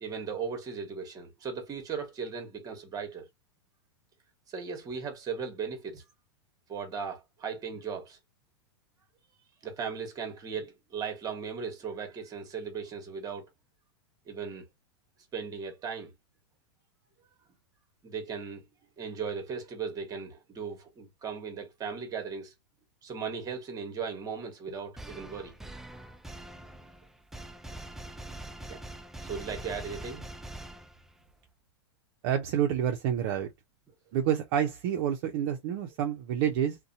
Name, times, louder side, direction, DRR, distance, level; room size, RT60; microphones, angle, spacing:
voice 1, 0.0-3.3 4.5-6.0 6.7-8.2 9.6-13.4 14.3-14.6 15.3-16.1 18.0-18.6 19.0-22.5 23.0-25.6 28.6-28.8 29.2-30.3, right 6 dB, 25° right, 1.2 m, -37 dB
sound 1, 25.0-31.3, right 1 dB, 5° right, 0.3 m, -44 dB
voice 2, 32.2-33.5 34.1-36.8, right 9 dB, 55° right, 0.6 m, -28 dB
2.7 x 2.2 x 2.6 m
hypercardioid pair, 125°, 14 cm